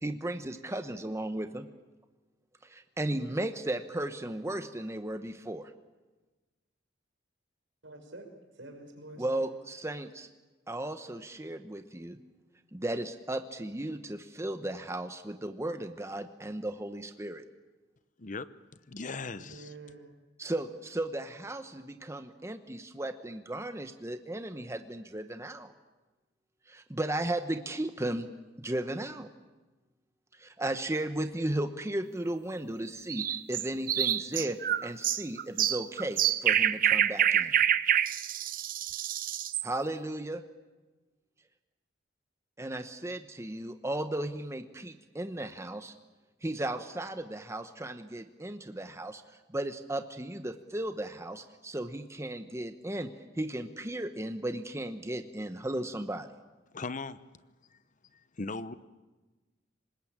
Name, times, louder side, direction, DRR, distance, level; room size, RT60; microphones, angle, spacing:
voice 1, 0.0-1.7 2.6-5.7 9.2-10.3 10.7-12.2 12.7-17.4 20.4-25.7 26.7-28.3 28.6-29.3 30.3-37.5 39.6-40.4 42.6-45.9 46.4-49.2 49.5-56.3, right 1 dB, 15° right, 0.9 m, -35 dB
voice 2, 7.8-9.6 19.4-20.1, right 2 dB, 80° right, 5.2 m, -48 dB
voice 3, 18.9-19.7 56.7-57.2 57.7-57.8 58.1-58.8, left 3 dB, 45° left, 0.8 m, -38 dB
sound 1, 33.1-39.7, right 10 dB, 50° right, 0.8 m, -27 dB
25.5 x 20.5 x 8.9 m
head